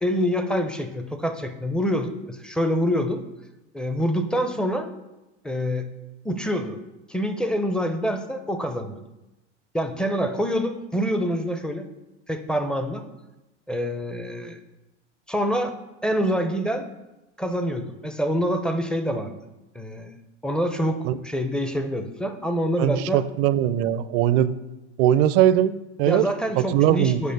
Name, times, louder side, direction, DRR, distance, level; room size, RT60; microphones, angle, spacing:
voice 1, 0.0-3.2 3.7-4.9 5.4-5.9 6.2-6.8 7.1-9.0 9.7-11.9 12.3-13.0 13.7-14.6 15.3-15.8 16.0-16.9 17.4-19.3 19.7-20.1 20.4-23.2 26.1-27.3, equal, ahead, 7 dB, 0.5 m, -26 dB
voice 2, 22.8-24.5 25.0-26.3 26.6-27.2, right 11 dB, 50° right, 15 dB, 0.5 m, -20 dB
6.7 x 5.0 x 6.5 m, 0.99 s
supercardioid pair, 120°, 35 cm